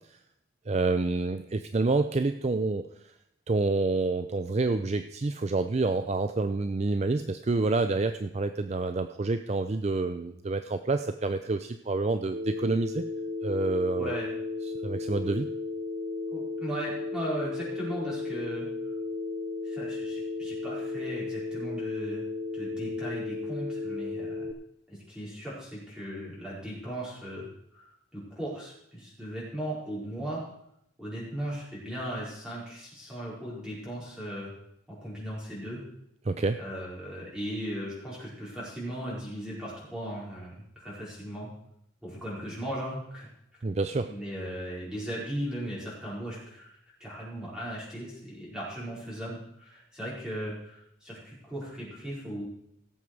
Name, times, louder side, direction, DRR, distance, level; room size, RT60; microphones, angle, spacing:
voice 1, 0.7-2.8 3.5-13.0 13.4-14.1 14.8-15.5 36.3-36.6 43.6-44.1, right 3 dB, 35° right, 9 dB, 0.4 m, -28 dB
Telephone, 12.3-24.5, left 3 dB, 55° right, 0.8 m, -34 dB
voice 2, 14.0-14.3 16.3-18.7 19.6-22.2 22.5-24.5 24.9-27.5 27.7-30.4 31.0-34.5 34.9-35.8 36.6-41.5 42.0-43.3 44.1-46.7 47.0-52.4, right 1 dB, 5° right, -7 dB, 5.1 m, -37 dB
17.0 x 7.3 x 4.8 m, 0.78 s
head